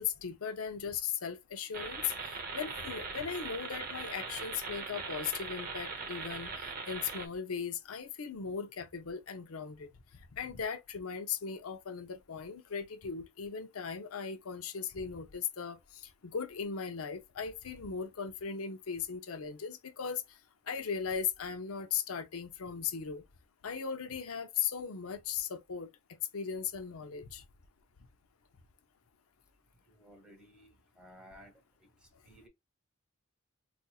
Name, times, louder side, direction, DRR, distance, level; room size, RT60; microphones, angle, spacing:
voice 1, 0.0-9.9 10.3-20.2 20.7-23.2 23.6-25.9 26.3-27.4, left 7 dB, 90° left, 0.6 m, -38 dB
sound 1, 1.7-7.3, right 4 dB, 45° right, 0.8 m, -40 dB
voice 2, 29.8-32.5, equal, 5° right, 1.1 m, -57 dB
4.1 x 2.5 x 2.3 m
head